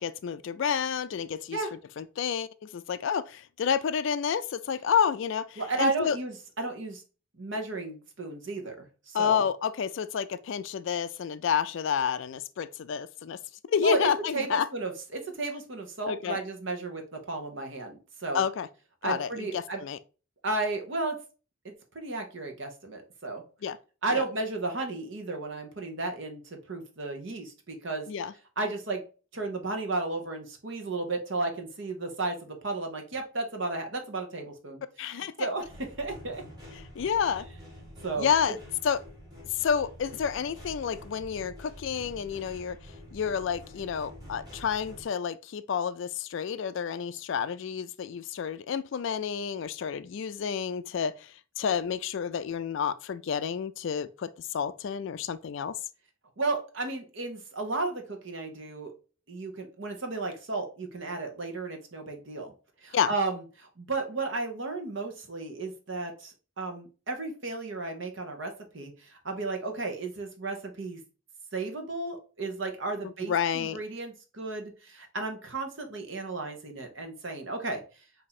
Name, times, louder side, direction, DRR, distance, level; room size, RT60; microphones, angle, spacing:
voice 1, 0.0-1.6 2.0-6.2 9.1-13.4 13.7-14.7 16.1-16.4 18.3-18.7 19.0-20.0 23.6-23.8 24.1-24.2 28.1-28.3 35.0-35.3 37.0-37.5 38.2-38.6 38.8-39.0 39.6-42.8 43.1-55.7 62.9-63.1 73.3-73.8, left 7 dB, 60° left, 0.3 m, -29 dB
voice 2, 5.6-7.0 7.4-9.4 13.8-18.4 19.0-19.8 20.4-21.2 21.6-23.4 24.0-28.1 28.6-29.0 29.3-36.4 38.0-38.3 56.4-58.9 59.3-62.5 62.8-71.0 71.5-78.0, right 3 dB, 60° right, 1.0 m, -34 dB
sound 1, 35.6-45.0, equal, 20° right, 1.7 m, -47 dB
4.3 x 2.8 x 4.0 m
head